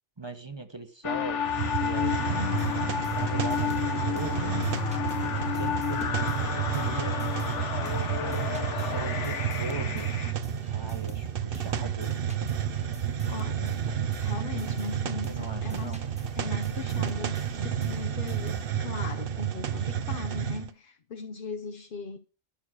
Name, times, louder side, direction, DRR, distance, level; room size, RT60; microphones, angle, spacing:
voice 1, 0.2-1.4 1.8-2.8 3.1-4.7 5.2-7.3 7.9-10.1 10.7-12.1 15.2-16.0, right 2 dB, 25° right, 1.2 m, -40 dB
sound 1, 1.0-10.3, left 8 dB, 80° left, 1.3 m, -31 dB
Hiss, 1.4-20.7, right 9 dB, 55° right, 0.9 m, -31 dB
sound 2, 2.5-7.6 7.9-19.0, right 2 dB, 5° right, 1.1 m, -49 dB
voice 2, 13.3-13.8 14.2-16.0 16.3-22.2, left 4 dB, 50° left, 0.9 m, -38 dB
12.0 x 6.5 x 6.2 m
omnidirectional pair, 1.2 m